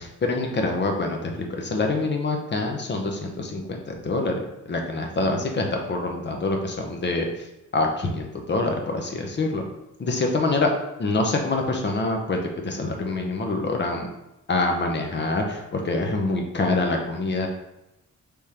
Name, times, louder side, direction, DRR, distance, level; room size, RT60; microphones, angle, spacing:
voice 1, 0.2-7.3 7.7-9.6 10.0-10.7 11.0-14.1 14.5-17.5, left 2 dB, 35° left, 2 dB, 0.7 m, -25 dB
4.9 x 3.5 x 2.8 m, 0.93 s
wide cardioid pair, 135°, 31 cm